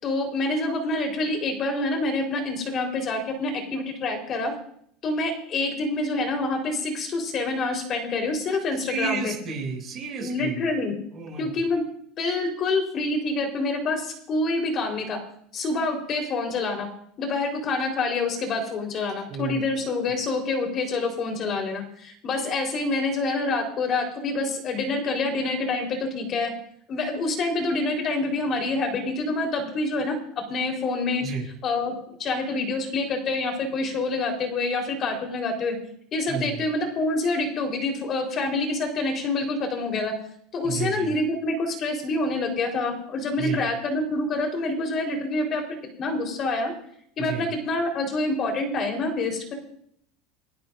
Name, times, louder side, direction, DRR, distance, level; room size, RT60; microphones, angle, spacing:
voice 1, 0.0-4.5 5.0-9.3 10.2-10.9 11.4-11.8 12.2-15.2 15.5-16.9 17.2-26.5 26.9-30.2 30.5-31.2 31.6-35.8 36.1-40.1 40.5-45.6 46.0-46.7 47.2-49.5, left 2 dB, 35° left, 3 dB, 3.9 m, -27 dB
voice 2, 8.9-10.6 11.1-11.5 19.3-19.6 31.2-31.4 36.3-36.6 40.6-41.1 43.4-43.6 47.2-47.4, right 6 dB, 30° right, -1 dB, 6.8 m, -31 dB
30.0 x 12.0 x 2.6 m, 0.67 s
supercardioid pair, 145°, 0 cm